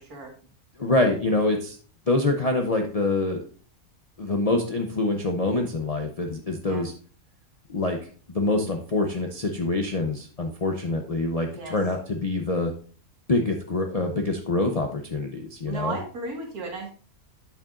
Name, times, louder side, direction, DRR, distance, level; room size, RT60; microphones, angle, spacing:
voice 1, 0.8-1.8 2.1-3.4 4.2-6.9 7.7-8.0 8.3-12.7 13.3-16.0, left 2 dB, 40° left, 3 dB, 0.5 m, -25 dB
voice 2, 15.7-16.9, right 3 dB, 75° right, 1 dB, 2.2 m, -34 dB
8.6 x 7.0 x 2.5 m, 0.40 s
omnidirectional pair, 1.6 m